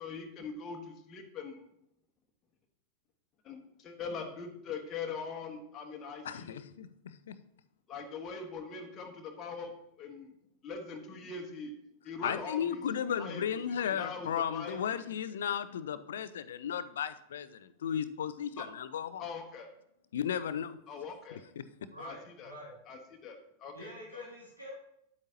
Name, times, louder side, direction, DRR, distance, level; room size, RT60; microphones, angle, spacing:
voice 1, 0.0-1.7 3.4-6.6 7.9-9.7 10.0-10.3 10.6-11.7 12.0-12.8 13.1-13.4 13.8-15.0 18.6-18.7 19.2-19.7 20.9-21.4 22.0-22.5 22.9-24.2, left 5 dB, 30° left, 1 dB, 1.2 m, -42 dB
voice 2, 6.2-7.4 12.2-19.2 20.1-20.8 21.6-21.7, left 8 dB, 60° left, 14 dB, 0.5 m, -35 dB
voice 3, 21.9-22.7 23.7-24.8, equal, 85° right, -6 dB, 3.1 m, -47 dB
9.8 x 8.1 x 2.9 m, 0.76 s
figure-of-eight pair, 90°, 0 cm